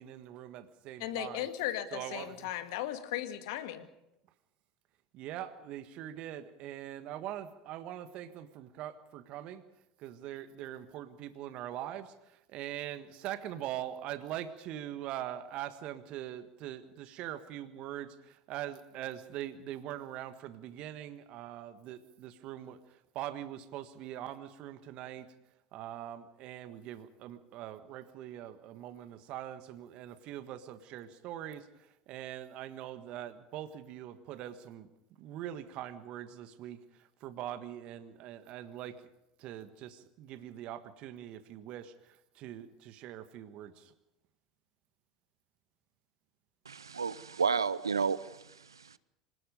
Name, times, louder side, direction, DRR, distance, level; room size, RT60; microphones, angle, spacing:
voice 1, 0.0-1.5 1.9-2.5 5.1-9.6 10.0-25.3 25.7-34.9 35.2-39.0 39.4-43.9, right 12 dB, 50° right, 11 dB, 1.6 m, -42 dB
voice 2, 1.0-3.9, left 12 dB, 65° left, 8 dB, 2.0 m, -36 dB
voice 3, 46.7-49.0, right 5 dB, 85° right, 18 dB, 0.7 m, -32 dB
26.0 x 19.5 x 5.3 m, 0.89 s
figure-of-eight pair, 75°, 2 cm